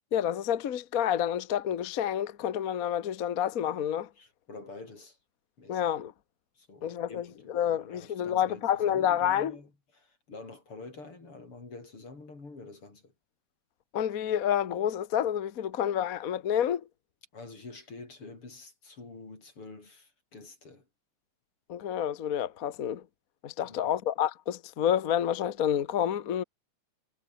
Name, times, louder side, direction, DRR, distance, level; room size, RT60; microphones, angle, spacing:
voice 1, 0.1-4.1 5.7-6.1 6.8-9.6 13.9-16.9 21.7-23.0 23.4-26.4, left 10 dB, 65° left, 0.8 m, -29 dB
voice 2, 4.2-5.2 5.6-5.8 6.5-13.1 17.3-20.9 23.6-24.0, left 3 dB, 45° left, 6.4 m, -47 dB
omnidirectional pair, 3.4 m